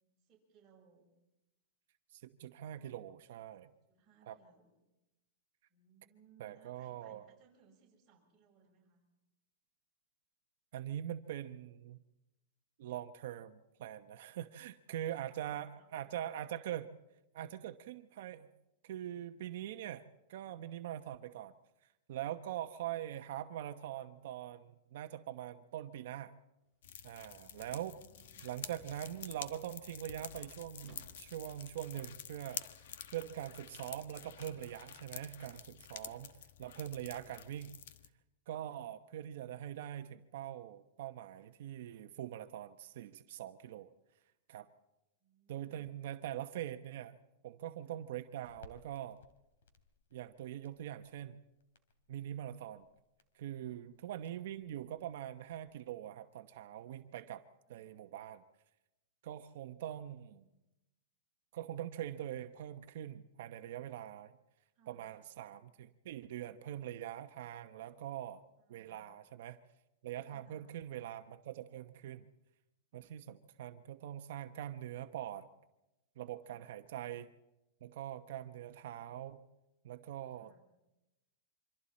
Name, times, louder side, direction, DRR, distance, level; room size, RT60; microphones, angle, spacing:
voice 1, 0.2-1.1 3.6-4.9 5.7-9.0 14.9-16.4 27.2-28.6 32.7-33.3 36.0-36.3 38.6-38.8 45.2-46.0 47.8-48.0 53.6-53.8 57.7-57.9 64.7-65.1 68.6-69.0 70.2-70.7 76.4-76.7 80.3-80.6, right 6 dB, 15° right, -5 dB, 6.9 m, -67 dB
voice 2, 2.1-3.7 4.3-4.4 6.4-7.3 10.7-12.0 12.8-16.9 17.3-18.5 18.8-21.5 22.1-26.3 27.0-28.0 28.4-32.8 33.1-37.7 38.5-43.9 44.5-44.7 45.5-47.2 47.4-49.2 50.1-51.4 52.1-52.9 53.3-57.4 57.7-58.4 59.2-60.4 61.5-64.4 64.9-68.4 68.7-69.6 70.0-72.3 72.9-75.5 76.2-77.3 77.8-79.4 79.8-80.6, right 11 dB, 60° right, 8 dB, 1.0 m, -43 dB
sound 1, 26.6-31.7 32.1-32.2, left 1 dB, 30° left, 7.1 m, -64 dB
sound 2, 26.8-38.1, left 9 dB, 65° left, 1.3 m, -49 dB
Crackle, 48.4-55.7, left 5 dB, 90° left, 3.0 m, -65 dB
27.5 x 25.0 x 4.3 m, 0.95 s
supercardioid pair, 165°, 0 cm